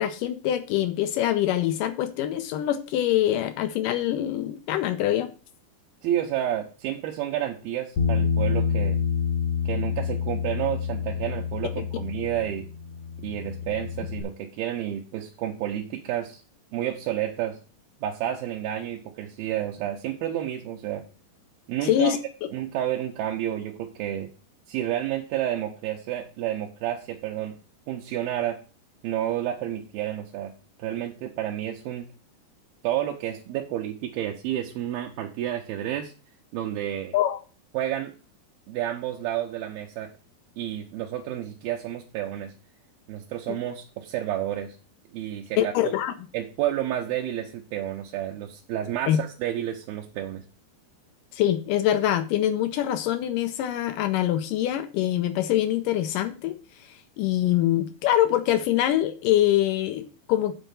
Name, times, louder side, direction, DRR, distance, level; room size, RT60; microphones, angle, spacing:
voice 1, 0.0-5.3 21.8-22.2 37.1-37.4 45.6-46.1 49.1-49.2 51.3-56.6 57.2-60.6, left 12 dB, 75° left, 9 dB, 2.0 m, -24 dB
voice 2, 6.0-9.0 9.7-12.7 13.2-16.4 16.7-17.6 18.0-21.0 21.7-22.2 22.5-24.3 24.7-27.5 27.9-28.6 29.0-30.5 30.8-32.1 32.8-36.1 36.5-37.2 37.7-38.1 38.7-40.1 40.6-42.5 43.1-44.8 45.1-45.9 46.3-50.4, right 12 dB, 75° right, 0 dB, 2.6 m, -30 dB
Bass guitar, 8.0-14.2, left 6 dB, 60° left, 1.7 m, -28 dB
9.2 x 4.2 x 7.0 m, 0.35 s
omnidirectional pair, 4.6 m